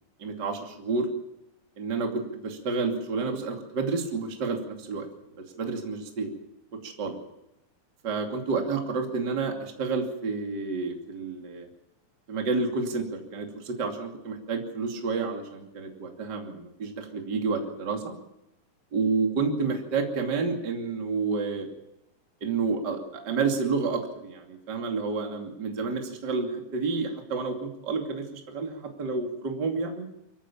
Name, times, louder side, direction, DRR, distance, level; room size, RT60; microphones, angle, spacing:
voice 1, 0.2-1.1 1.8-5.1 5.4-6.3 6.8-7.2 8.0-11.7 12.3-18.1 18.9-21.7 22.4-30.1, right 4 dB, 30° right, 3 dB, 2.9 m, -30 dB
23.5 x 15.5 x 7.1 m, 0.85 s
omnidirectional pair, 3.9 m